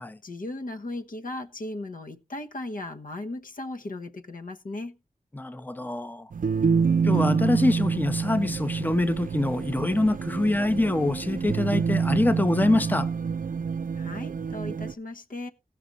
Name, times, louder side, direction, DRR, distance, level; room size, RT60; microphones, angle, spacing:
voice 1, 0.0-4.9 13.9-15.5, left 2 dB, 70° left, 1.1 m, -37 dB
voice 2, 5.3-6.3 7.0-13.1, left 2 dB, 15° left, 0.7 m, -25 dB
sound 1, 6.3-14.9, right 5 dB, 70° right, 0.5 m, -27 dB
16.0 x 6.0 x 3.9 m
wide cardioid pair, 60°, 14 cm